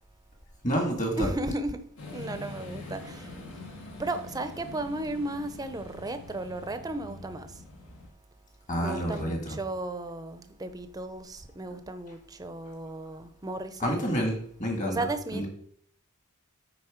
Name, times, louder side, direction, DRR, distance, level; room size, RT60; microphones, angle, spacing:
voice 1, 0.6-1.3 8.7-9.6 13.8-15.0 15.3-15.5, equal, 35° left, 2 dB, 2.0 m, -28 dB
voice 2, 1.2-1.9 2.1-3.3 4.0-7.6 8.8-14.1 14.9-15.4, right 2 dB, 20° right, 9 dB, 0.6 m, -35 dB
sound 1, 2.0-8.1, left 2 dB, 75° left, 1.6 m, -44 dB
9.1 x 3.8 x 5.0 m, 0.63 s
head